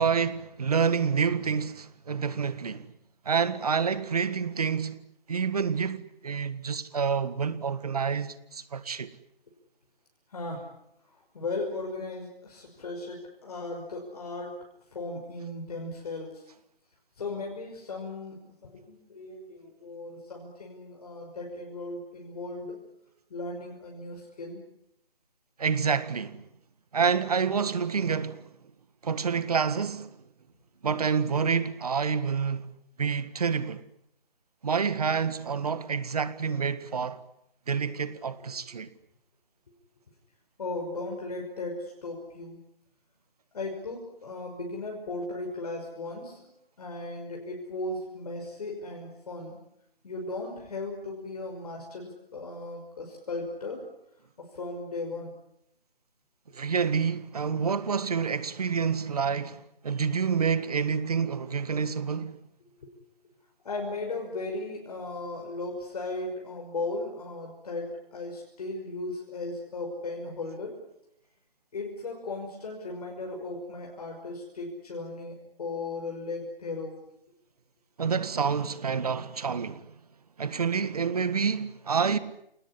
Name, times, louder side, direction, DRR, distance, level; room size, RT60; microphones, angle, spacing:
voice 1, 0.0-2.9 3.2-5.0 5.3-9.1 25.6-26.4 26.9-28.5 29.0-30.1 30.8-32.7 33.0-33.8 34.6-37.2 37.7-38.9 56.5-62.4 78.0-79.9 80.4-82.2, right 6 dB, 40° right, 1.7 m, -28 dB
voice 2, 10.3-10.6 11.3-14.5 14.9-16.4 17.2-22.8 23.3-24.6 40.6-42.6 43.5-46.5 46.8-49.6 50.0-53.9 54.4-55.3 57.5-57.6 62.8-62.9 63.6-70.8 71.7-76.9, left 2 dB, 40° left, 5.8 m, -36 dB
29.0 x 19.0 x 9.9 m
figure-of-eight pair, 165°, 30 cm